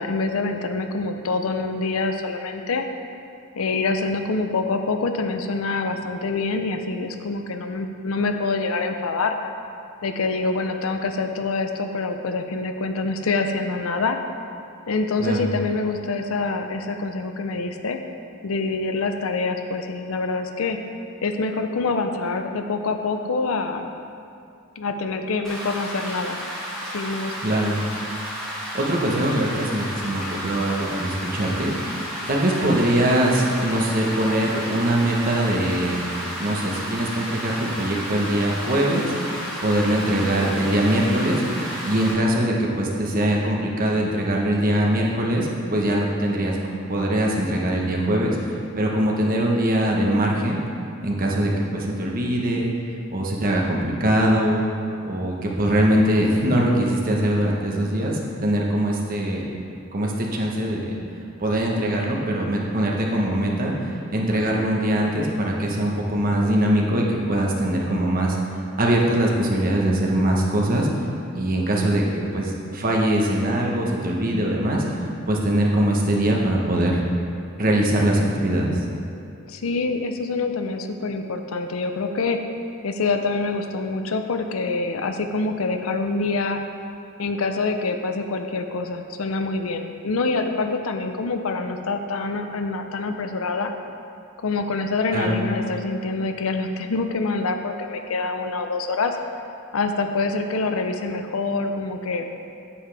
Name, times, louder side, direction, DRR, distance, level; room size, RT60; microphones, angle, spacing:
voice 1, 0.0-2.9 3.5-9.5 10.0-14.2 14.9-18.0 18.4-20.8 21.2-23.9 24.8-26.4 26.8-27.3 79.5-82.4 82.8-86.6 87.2-93.7 94.4-99.2 99.7-102.3, left 3 dB, 75° left, 6 dB, 0.6 m, -26 dB
voice 2, 15.2-15.5 27.4-27.8 28.5-31.7 32.3-36.0 36.4-39.1 39.6-46.6 46.9-50.6 51.0-52.7 53.1-54.6 55.1-59.5 59.9-61.0 61.4-68.4 68.8-70.9 71.3-74.8 75.3-77.0 77.5-78.8 95.1-95.4, right 1 dB, 40° right, -1 dB, 1.0 m, -22 dB
Rain, 25.4-42.1, equal, ahead, 2.0 m, -32 dB
8.6 x 7.4 x 3.4 m, 2.5 s
head